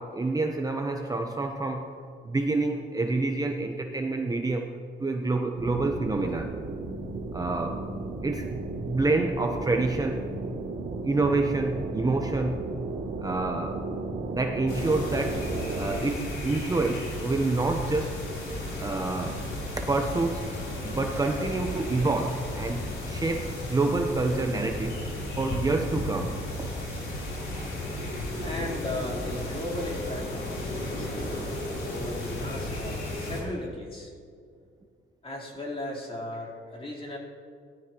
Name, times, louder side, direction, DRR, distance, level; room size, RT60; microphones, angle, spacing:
voice 1, 0.0-1.9 2.2-4.7 5.0-6.5 7.3-7.8 8.2-10.3 11.0-12.6 13.2-13.8 14.3-15.5 15.8-18.2 18.8-19.4 19.9-20.5 20.8-25.0 25.4-27.0 27.3-27.7, right 3 dB, 20° right, 3 dB, 0.9 m, -28 dB
sound 1, 5.5-16.0, right 3 dB, 70° right, 2.3 m, -34 dB
sound 2, 14.7-33.4, left 1 dB, 85° left, 3.8 m, -34 dB
voice 2, 28.4-34.1 35.2-37.2, left 1 dB, 30° left, -3 dB, 3.9 m, -36 dB
18.0 x 12.0 x 3.0 m, 2.2 s
cardioid pair, 90°, 20 cm